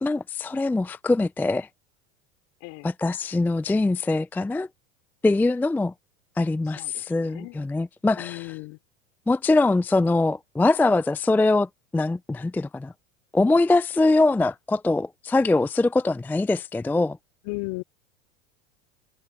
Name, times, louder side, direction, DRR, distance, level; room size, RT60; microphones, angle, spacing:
voice 1, 0.0-1.7 2.8-4.7 5.2-5.9 6.4-8.6 9.3-12.9 13.3-17.2, left 2 dB, 5° left, 0.5 m, -23 dB
voice 2, 6.8-7.6 8.2-8.8 17.4-17.8, left 27 dB, 55° left, 3.3 m, -35 dB
hypercardioid pair, 85°, 36 cm